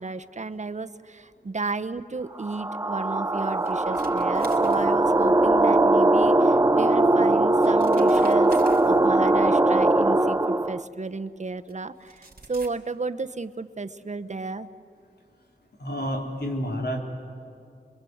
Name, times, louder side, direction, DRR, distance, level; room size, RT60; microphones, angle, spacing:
voice 1, 0.0-14.7, right 3 dB, 40° right, 9 dB, 0.9 m, -33 dB
sound 1, 2.4-10.8, right 2 dB, 20° right, 0.5 m, -20 dB
sound 2, 3.5-5.4 6.8-6.9 7.4-9.3 10.5-10.6 11.7-11.8 12.0-12.7, right 3 dB, 60° right, 3.1 m, -48 dB
voice 2, 15.8-17.0, equal, 65° left, 0 dB, 3.8 m, -29 dB
26.5 x 23.0 x 8.0 m, 2.5 s
wide cardioid pair, 85°, 18 cm